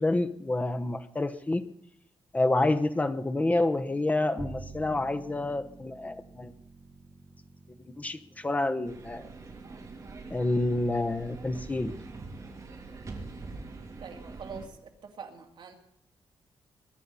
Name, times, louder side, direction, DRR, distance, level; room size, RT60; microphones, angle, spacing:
voice 1, 0.0-1.7 2.3-6.5 8.0-9.3 10.3-12.0, left 2 dB, 15° left, 9 dB, 0.8 m, -28 dB
Bowed string instrument, 4.4-10.8, right 3 dB, 15° right, 1.2 m, -48 dB
sound 1, 8.9-14.7, right 3 dB, 35° right, 2.7 m, -44 dB
voice 2, 14.0-15.7, right 5 dB, 60° right, 2 dB, 2.4 m, -44 dB
22.0 x 10.0 x 5.5 m, 0.76 s
wide cardioid pair, 165°, 9 cm